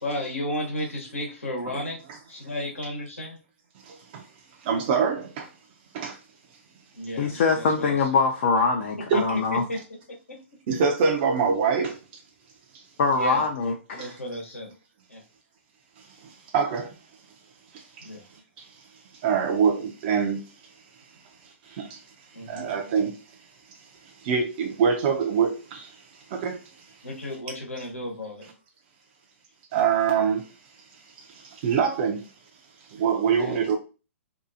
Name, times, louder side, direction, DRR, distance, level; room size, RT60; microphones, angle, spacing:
voice 1, 0.0-2.0 2.3-3.4 6.9-8.1 9.1-9.8 10.3-10.4 13.1-13.5 13.9-14.7 15.1-15.2 18.0-18.2 22.3-22.7 27.0-28.5 33.3-33.7, left 1 dB, 85° left, 1.0 m, -33 dB
voice 2, 3.8-4.2 4.6-5.5 5.9-6.2 9.1-9.2 10.7-12.0 12.7-12.8 16.2-17.0 17.7-18.1 18.6-18.7 19.2-20.4 21.6-22.0 22.5-23.2 24.2-26.0 26.3-26.6 29.7-30.5 31.3-32.2 32.9-33.8, right 6 dB, 45° right, 0.4 m, -25 dB
voice 3, 7.2-9.6 13.0-14.0, left 4 dB, 55° left, 0.5 m, -23 dB
2.7 x 2.3 x 2.6 m
figure-of-eight pair, 120°, 7 cm